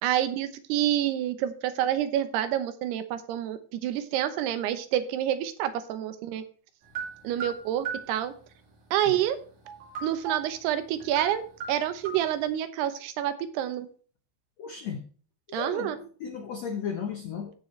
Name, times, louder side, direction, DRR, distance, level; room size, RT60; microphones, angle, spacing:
voice 1, 0.0-6.4 7.2-8.3 8.9-9.4 10.0-13.9 15.5-16.0, right 11 dB, 85° right, 11 dB, 3.0 m, -28 dB
sound 1, 7.0-8.1 9.7-10.5 11.0-11.3 11.6-12.3, right 5 dB, 65° right, 4.4 m, -36 dB
voice 2, 14.6-15.0 15.5-17.5, left 6 dB, 80° left, 4 dB, 1.5 m, -35 dB
15.5 x 6.5 x 3.2 m, 0.42 s
omnidirectional pair, 4.6 m